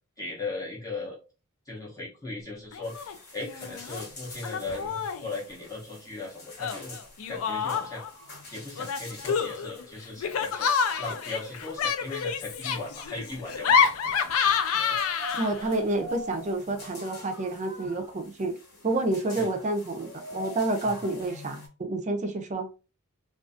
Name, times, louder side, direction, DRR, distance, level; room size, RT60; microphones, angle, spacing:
voice 1, 0.2-1.2 1.7-7.0 7.3-8.0 8.5-13.9 14.7-14.8 19.4-19.5 20.8-20.9, left 3 dB, 15° left, 0.6 m, -38 dB
Laughter, 2.7-3.1 3.4-4.0 4.4-5.3 6.6-8.1 8.8-15.7, left 6 dB, 80° left, 0.4 m, -28 dB
sound 1, 2.8-21.7, left 2 dB, 50° left, 0.9 m, -45 dB
voice 2, 15.3-18.5 18.8-22.7, right 2 dB, 35° right, 0.4 m, -29 dB
2.4 x 2.3 x 2.4 m
head